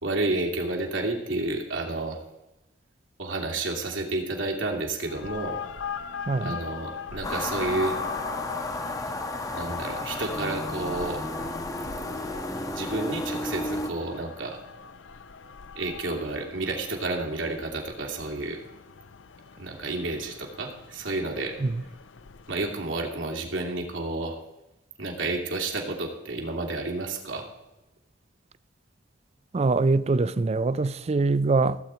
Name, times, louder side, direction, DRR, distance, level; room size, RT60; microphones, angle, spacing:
voice 1, 0.0-2.2 3.2-5.6 6.4-8.0 9.5-11.2 12.2-12.3 12.7-14.6 15.8-18.6 19.6-21.6 22.5-24.4 25.0-27.5, right 2 dB, 85° right, 2.5 m, -30 dB
sound 1, 5.0-22.9, left 6 dB, 75° left, 0.6 m, -41 dB
voice 2, 6.3-6.6 21.6-21.8 29.5-31.8, right 3 dB, 35° right, 0.4 m, -23 dB
sound 2, 7.2-13.9, left 1 dB, 20° left, 0.8 m, -32 dB
17.0 x 8.0 x 4.5 m
head